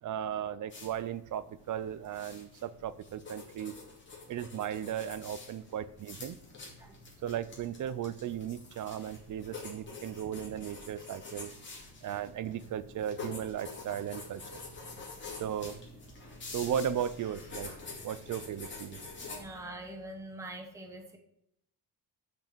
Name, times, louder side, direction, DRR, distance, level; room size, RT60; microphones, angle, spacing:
voice 1, 0.0-3.7 4.3-6.4 7.2-11.5 12.0-14.6 15.4-15.8 16.5-17.7 18.0-19.0, right 9 dB, 50° right, 16 dB, 0.5 m, -36 dB
sound 1, 0.7-19.4, left 3 dB, 25° left, 2.4 m, -47 dB
voice 2, 19.2-21.2, right 1 dB, 5° right, 3 dB, 1.0 m, -44 dB
6.7 x 6.0 x 6.6 m, 0.77 s
cardioid pair, 170°, 41 cm